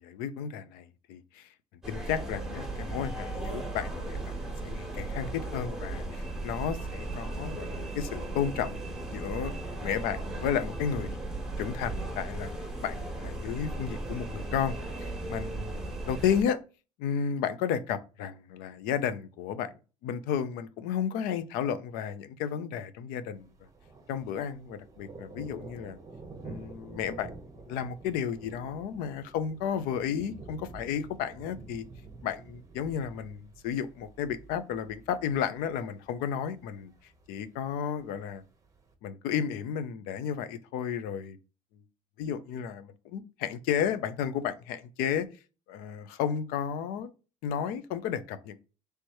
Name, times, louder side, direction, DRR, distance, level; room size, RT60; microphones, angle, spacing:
voice 1, 0.0-1.5 1.9-4.3 4.6-8.8 9.1-9.5 9.8-11.2 11.6-12.5 12.8-16.6 17.0-23.5 24.1-26.0 26.4-27.3 27.7-31.9 32.2-36.9 37.3-38.4 39.0-41.4 42.2-45.3 45.7-47.1 47.4-48.6, left 8 dB, 85° left, 0.5 m, -33 dB
sound 1, 1.8-16.4, right 2 dB, 5° right, 1.3 m, -36 dB
Thunder, 23.4-38.9, right 3 dB, 20° right, 0.9 m, -49 dB
3.3 x 3.0 x 4.5 m
cardioid pair, 115°, 15 cm